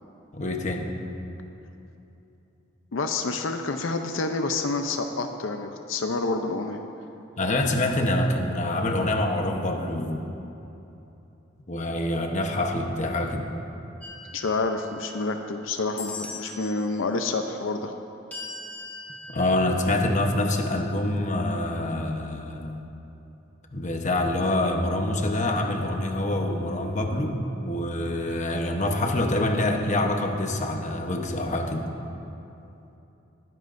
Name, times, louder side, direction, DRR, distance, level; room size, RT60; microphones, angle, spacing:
voice 1, 0.3-0.9 7.4-10.3 11.7-13.5 19.3-22.8 23.7-27.4 27.6-31.8, left 1 dB, 40° left, 3 dB, 1.0 m, -26 dB
voice 2, 2.9-6.8 14.3-17.9, left 3 dB, 80° left, 6 dB, 0.6 m, -28 dB
sound 1, 14.0-15.5 16.0-16.8 18.3-19.4, left 3 dB, 10° left, 1.5 m, -40 dB
21.0 x 10.5 x 2.6 m, 2.9 s
head